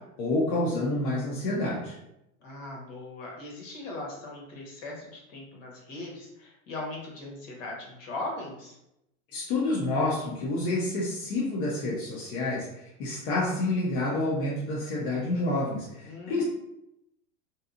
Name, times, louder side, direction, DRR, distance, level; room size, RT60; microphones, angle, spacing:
voice 1, 0.2-2.0 9.3-16.4, left 2 dB, 40° left, -5 dB, 0.6 m, -28 dB
voice 2, 2.4-8.7 16.0-16.4, left 2 dB, 65° left, -2 dB, 1.1 m, -39 dB
2.8 x 2.3 x 2.4 m, 0.84 s
supercardioid pair, 170°, 39 cm